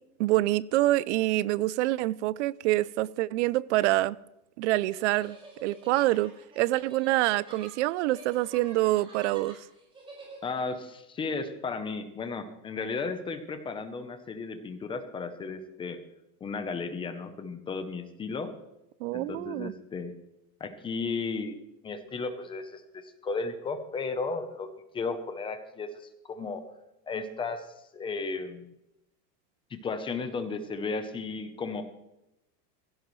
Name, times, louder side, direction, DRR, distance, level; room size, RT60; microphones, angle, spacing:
voice 1, 0.2-4.2 4.6-9.6 19.0-19.7, right 17 dB, 50° right, 0.5 m, -26 dB
sound 1, 4.7-10.7, right 2 dB, 10° right, 5.1 m, -49 dB
voice 2, 10.4-16.0 16.4-18.5 19.1-20.1 20.6-21.6 21.8-24.7 24.9-25.9 26.2-26.6 27.1-27.7 27.9-28.7 29.7-31.8, left 4 dB, 10° left, 0.6 m, -34 dB
16.0 x 16.0 x 3.2 m
supercardioid pair, 160°, 46 cm